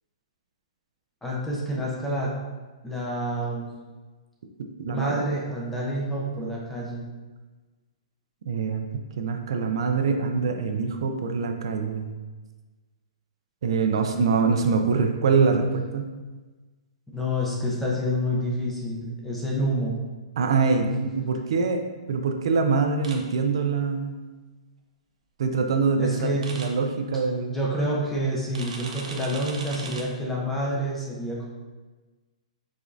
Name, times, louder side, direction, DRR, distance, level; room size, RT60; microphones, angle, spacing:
voice 1, 1.2-2.3 2.8-3.7 4.9-7.0 17.1-20.0 26.0-26.5 27.5-31.5, equal, 5° left, -4 dB, 0.5 m, -28 dB
voice 2, 4.8-5.2 8.5-8.9 9.2-12.1 13.6-16.1 20.4-24.1 25.4-27.5, right 5 dB, 50° right, 5 dB, 0.4 m, -24 dB
sound 1, 23.0-23.2 26.4-26.7 28.5-30.0, right 4 dB, 70° right, 0.8 m, -37 dB
5.0 x 3.5 x 2.6 m, 1.3 s
hypercardioid pair, 175°, 4 cm